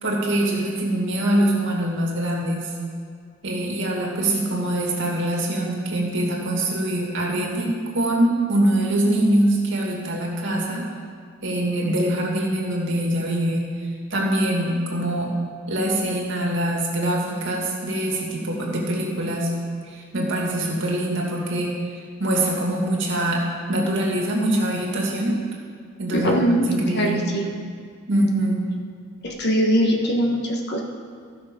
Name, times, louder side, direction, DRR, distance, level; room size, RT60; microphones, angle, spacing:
voice 1, 0.0-2.7 3.4-10.9 11.4-13.7 14.1-15.4 15.7-19.5 19.8-21.7 22.2-23.4 23.7-25.4 26.0-26.4 26.7-27.3 28.1-28.7, right 1 dB, 60° right, -2 dB, 2.1 m, -23 dB
voice 2, 26.1-26.7 26.9-27.5 29.2-30.8, equal, 50° left, 1 dB, 1.3 m, -21 dB
14.5 x 6.1 x 5.2 m, 2.1 s
head